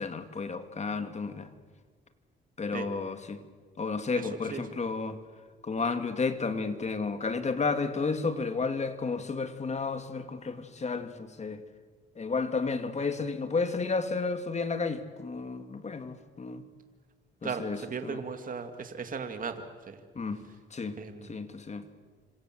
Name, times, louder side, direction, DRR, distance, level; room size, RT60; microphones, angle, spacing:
voice 1, 0.0-1.5 2.6-3.4 3.8-5.2 5.6-11.6 12.2-16.6 17.4-18.2 20.2-20.4 20.7-21.0 21.2-21.8, left 4 dB, 35° left, 9 dB, 2.3 m, -32 dB
voice 2, 4.2-4.6 17.4-20.0 21.0-21.5, right 5 dB, 45° right, 6 dB, 2.5 m, -37 dB
26.5 x 26.0 x 7.8 m, 1.5 s
cardioid pair, 90°, 20 cm